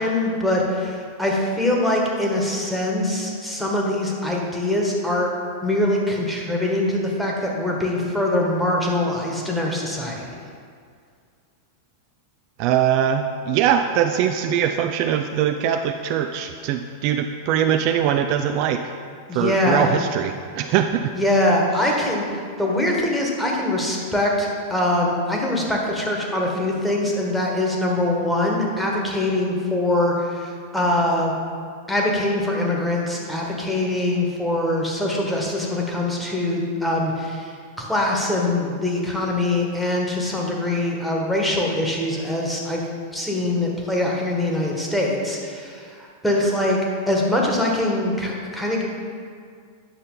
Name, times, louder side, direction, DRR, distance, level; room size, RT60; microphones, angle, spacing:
voice 1, 0.0-5.3 5.6-10.4 19.3-19.9 21.1-31.3 31.9-42.8 43.1-46.8 47.1-48.8, left 1 dB, 5° left, -2 dB, 1.5 m, -23 dB
voice 2, 12.6-18.8 19.3-21.1 21.8-21.9, right 9 dB, 45° right, 6 dB, 0.3 m, -22 dB
9.6 x 6.4 x 3.9 m, 2.2 s
figure-of-eight pair, 90°, 0 cm